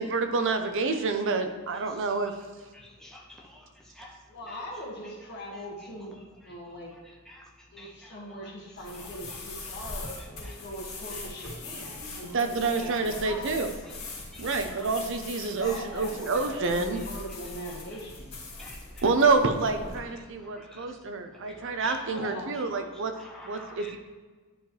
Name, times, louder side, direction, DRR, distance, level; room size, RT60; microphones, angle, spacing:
voice 1, 0.0-2.3 12.2-13.7 14.4-17.0 19.0-23.1 23.4-24.0, right 4 dB, 60° right, 7 dB, 0.6 m, -28 dB
voice 2, 2.7-3.7 3.9-4.2 7.3-7.4 7.8-8.1 9.3-9.4 10.4-10.5 11.8-12.4 12.8-12.9 14.3-14.5 15.5-15.6 18.6-19.0 20.4-20.9 21.5-22.2 22.7-22.8 23.1-24.0, left 1 dB, 5° left, -3 dB, 0.8 m, -48 dB
voice 3, 4.3-6.9 7.7-10.0 10.4-13.6 15.4-18.9 19.4-19.5 22.1-22.6, equal, 50° left, -2 dB, 1.7 m, -41 dB
sound 1, 8.8-20.0, left 3 dB, 65° left, 2.3 m, -41 dB
10.5 x 4.6 x 3.2 m, 1.4 s
head